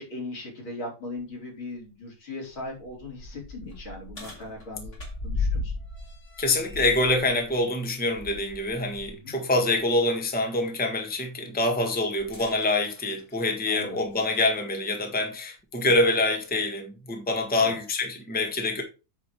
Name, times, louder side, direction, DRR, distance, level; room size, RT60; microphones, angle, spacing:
voice 1, 0.0-5.7 9.1-9.3 13.7-14.0 17.6-17.7, left 2 dB, 80° left, 4.9 m, -39 dB
sound 1, 1.2-1.3 1.8-1.9 2.5-9.2 9.6-9.8 12.2-14.6 15.6-15.7 16.5-16.6, left 3 dB, 35° left, 3.4 m, -36 dB
voice 2, 6.4-18.8, left 2 dB, 5° left, 1.4 m, -25 dB
9.2 x 5.1 x 4.8 m
omnidirectional pair, 2.2 m